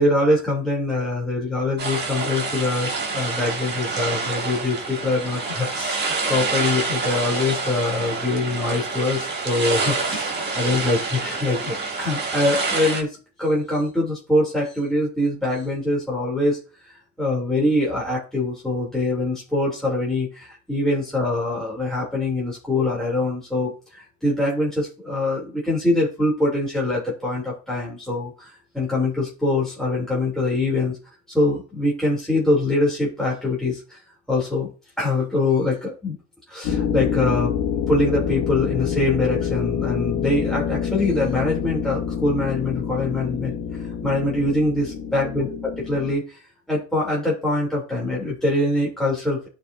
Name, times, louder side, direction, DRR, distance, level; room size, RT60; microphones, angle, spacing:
voice 1, 0.0-16.6 16.8-31.0 31.3-34.0 34.3-34.7 35.0-36.2 36.5-37.5 37.9-46.4 46.7-49.5, left 2 dB, ahead, -5 dB, 3.1 m, -24 dB
sound 1, 1.8-13.0, right 3 dB, 30° right, 2.9 m, -27 dB
sound 2, 36.6-46.1, left 8 dB, 70° left, 1.4 m, -27 dB
11.5 x 5.1 x 2.7 m, 0.35 s
supercardioid pair, 85°, 34 cm